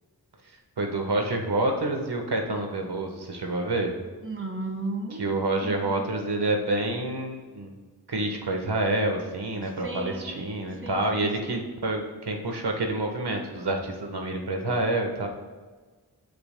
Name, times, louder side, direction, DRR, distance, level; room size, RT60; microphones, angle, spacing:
voice 1, 0.8-3.9 5.2-7.7 8.1-15.3, right 2 dB, 80° right, 3 dB, 1.3 m, -28 dB
voice 2, 4.2-5.3 5.6-6.0 9.6-11.6, right 2 dB, 30° right, 2 dB, 1.7 m, -36 dB
20.0 x 6.7 x 2.2 m, 1.4 s
wide cardioid pair, 50°, 39 cm